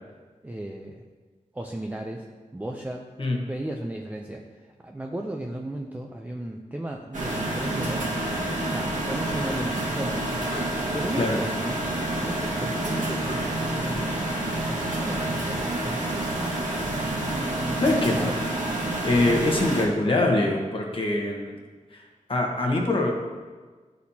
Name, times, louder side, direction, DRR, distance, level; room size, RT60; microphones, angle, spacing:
voice 1, 0.4-1.0 1.5-2.3 2.5-3.0 3.5-8.4 8.7-10.4 10.9-11.8 12.2-14.2 14.7-16.4 16.9-18.5 19.2-19.4, right 1 dB, 10° right, 1 dB, 0.4 m, -35 dB
sound 1, 7.1-19.8, right 1 dB, 80° right, 1.6 m, -28 dB
voice 2, 17.8-18.3 19.0-21.6 22.3-23.1, left 2 dB, 45° left, 0 dB, 1.2 m, -23 dB
11.5 x 4.2 x 2.8 m, 1.4 s
wide cardioid pair, 110°, 13 cm